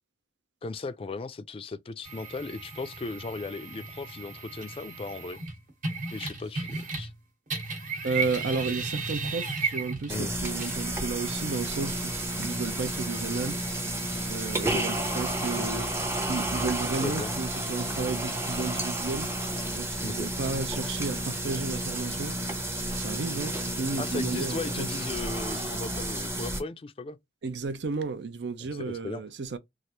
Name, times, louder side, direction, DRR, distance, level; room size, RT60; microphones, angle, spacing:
voice 1, 0.6-5.4 6.1-7.1 10.1-10.4 14.6-14.9 17.0-17.3 20.0-20.3 24.0-27.2 28.6-29.2, left 3 dB, 30° left, 0.3 m, -36 dB
sound 1, 2.0-7.2 7.5-15.6, right 4 dB, 45° right, 1.1 m, -36 dB
voice 2, 8.0-13.6 14.3-15.9 16.3-19.3 19.7-22.4 22.9-24.9 27.4-29.6, right 4 dB, 80° right, 0.5 m, -33 dB
sound 2, 10.1-26.6, right 1 dB, 15° right, 0.6 m, -31 dB
3.2 x 2.4 x 2.8 m
head